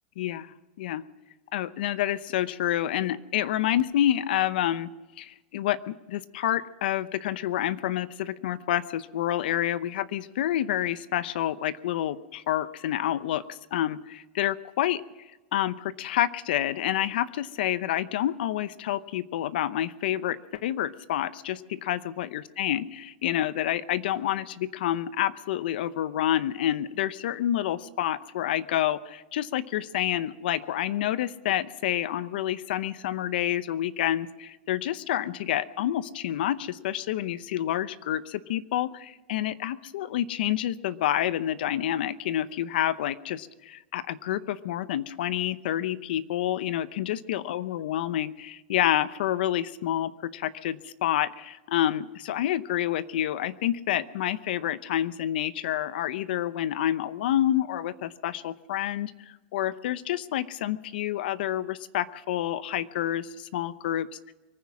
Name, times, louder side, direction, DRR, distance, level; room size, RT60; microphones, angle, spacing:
voice 1, 0.2-1.0 1.5-4.9 5.2-15.0 15.5-59.1 59.5-64.3, left 12 dB, 65° left, 16 dB, 0.7 m, -28 dB
23.5 x 9.6 x 6.1 m, 1.1 s
supercardioid pair, 170°, 6 cm